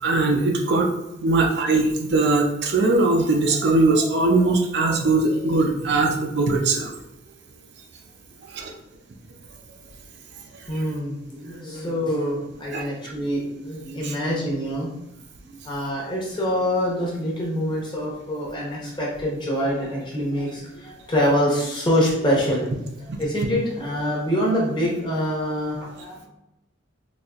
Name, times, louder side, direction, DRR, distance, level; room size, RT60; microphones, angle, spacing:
voice 1, 0.0-0.9 1.2-6.9 8.5-8.7 10.7-10.8 12.7-12.9 14.0-14.1 23.1-23.2, right 3 dB, 55° right, 2 dB, 0.4 m, -20 dB
voice 2, 10.7-15.0 15.5-26.3, equal, 25° left, -4 dB, 0.8 m, -25 dB
4.0 x 2.7 x 2.4 m, 0.89 s
head